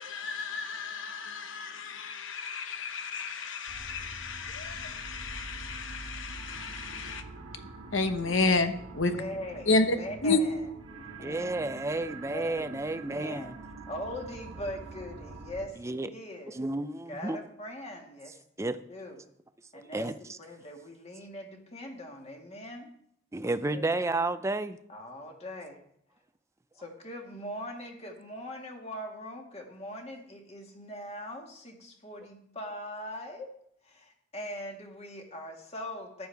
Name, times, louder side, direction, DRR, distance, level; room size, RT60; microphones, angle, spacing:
voice 1, 0.0-7.2 7.9-9.2 9.7-10.0 10.2-10.4, left 3 dB, 70° left, 1.1 m, -30 dB
sound 1, 3.7-15.7, right 3 dB, 90° right, 1.7 m, -45 dB
voice 2, 9.1-10.7 11.0-11.8 12.3-12.7 13.1-13.5 13.9-16.6 17.1-19.2 19.7-22.9 23.7-23.8 24.9-25.8 26.8-33.5 33.8-36.3, left 1 dB, 30° left, 1.9 m, -41 dB
voice 3, 11.2-13.5 15.8-16.1 16.5-17.4 18.6-18.8 19.9-20.4 23.3-24.8, right 2 dB, 15° right, 0.5 m, -31 dB
14.0 x 10.5 x 3.5 m
head